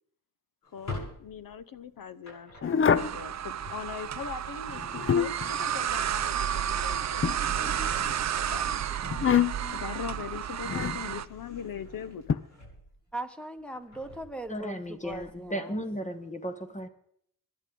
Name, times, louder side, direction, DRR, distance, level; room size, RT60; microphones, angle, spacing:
Drawer open or close, 0.6-4.3 5.8-6.1 6.4-6.6 7.1-10.0 10.4-13.2 13.6-15.5, left 2 dB, 60° left, 7.8 m, -47 dB
voice 1, 0.7-9.0 9.7-12.4, left 7 dB, 80° left, 1.0 m, -41 dB
sound 1, 2.6-3.2 4.7-5.5 7.2-8.1 9.1-9.8 10.6-11.0 12.3-12.4, left 7 dB, 40° left, 0.5 m, -26 dB
sound 2, 3.0-11.3, right 10 dB, 55° right, 0.5 m, -31 dB
voice 2, 13.1-15.8, right 1 dB, 5° left, 1.4 m, -39 dB
voice 3, 14.5-16.9, equal, 20° left, 1.2 m, -35 dB
25.0 x 11.0 x 3.9 m
wide cardioid pair, 115°, 34 cm